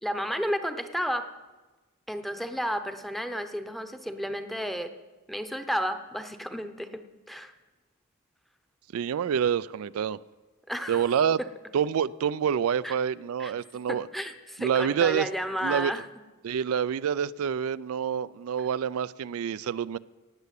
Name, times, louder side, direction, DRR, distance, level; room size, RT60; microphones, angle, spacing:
voice 1, 0.0-1.3 2.1-4.9 5.3-7.5 10.7-11.1 11.4-11.5 12.8-13.0 13.4-13.5 13.9-16.1, equal, ahead, 0.8 m, -32 dB
voice 2, 8.9-10.2 10.9-11.4 11.7-14.1 14.6-15.3 15.6-15.9 16.4-20.0, right 8 dB, 80° right, 0.4 m, -27 dB
18.0 x 6.8 x 8.3 m
head